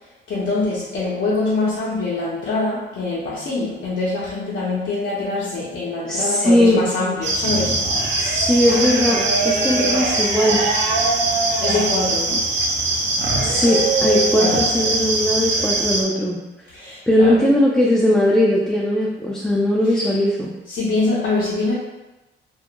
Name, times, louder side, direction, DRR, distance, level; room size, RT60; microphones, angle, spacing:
voice 1, 0.3-7.7 11.6-12.5 14.4-14.6 16.7-17.4 19.8-20.1 20.7-21.7, left 3 dB, 65° left, -8 dB, 0.6 m, -24 dB
voice 2, 6.0-6.8 8.2-10.6 13.4-16.4 17.1-20.5, left 1 dB, 5° left, -5 dB, 0.3 m, -19 dB
sound 1, 7.2-16.0, right 2 dB, 65° right, 0.5 m, -21 dB
2.3 x 2.1 x 2.8 m, 1.1 s
cardioid pair, 90°, 20 cm